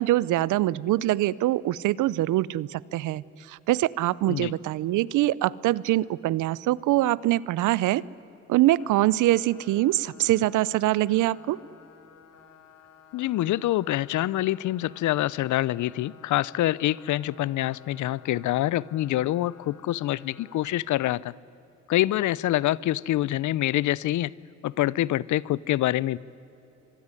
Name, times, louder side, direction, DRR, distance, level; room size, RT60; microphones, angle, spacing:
voice 1, 0.0-8.0 8.5-11.6, right 15 dB, 85° right, 22 dB, 0.7 m, -24 dB
sound 1, 8.8-20.7, left 7 dB, 60° left, 2.6 m, -54 dB
voice 2, 13.1-21.3 21.9-24.3 24.6-26.2, left 14 dB, 75° left, 22 dB, 0.7 m, -26 dB
25.0 x 22.5 x 9.8 m, 3.0 s
cardioid pair, 90°, 30 cm